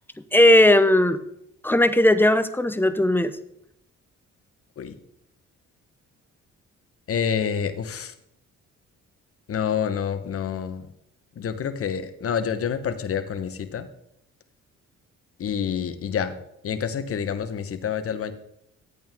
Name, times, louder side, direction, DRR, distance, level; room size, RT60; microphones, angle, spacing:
voice 1, 0.3-1.2 1.6-3.3, left 1 dB, 5° left, 11 dB, 0.7 m, -17 dB
voice 2, 7.1-8.1 9.5-10.9 11.3-13.9 15.4-16.4 16.6-18.3, left 7 dB, 50° left, 9 dB, 1.1 m, -28 dB
11.0 x 8.6 x 3.6 m, 0.76 s
cardioid pair, 90°, 30 cm